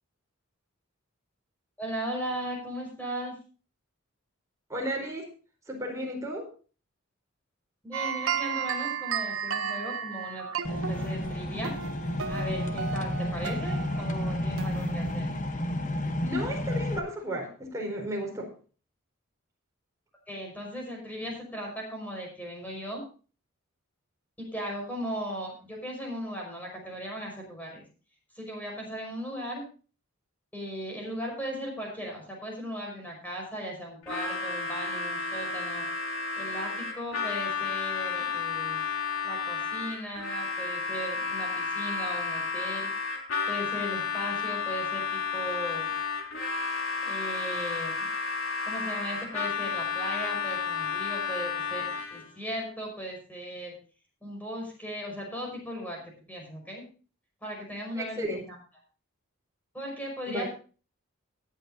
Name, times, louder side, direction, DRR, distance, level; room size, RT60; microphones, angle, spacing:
voice 1, 1.8-3.3 7.8-11.7 12.3-15.3 20.3-23.0 24.4-27.8 28.4-29.6 30.5-35.9 36.4-38.8 39.2-42.9 43.5-45.9 47.0-48.1 48.6-53.8 54.2-56.0 56.3-56.8 57.4-58.4 59.7-60.5, equal, 10° left, 0 dB, 5.4 m, -37 dB
voice 2, 4.7-5.3 5.7-6.5 16.2-18.5 57.9-58.5 60.3-60.5, equal, 15° right, -1 dB, 4.2 m, -33 dB
sound 1, 7.9-15.5, right 7 dB, 70° right, 1.3 m, -34 dB
sound 2, 10.6-17.0, left 1 dB, 35° left, 1.0 m, -31 dB
Harmonica, 34.0-52.3, left 5 dB, 70° left, 3.3 m, -32 dB
18.5 x 9.9 x 2.7 m, 0.37 s
head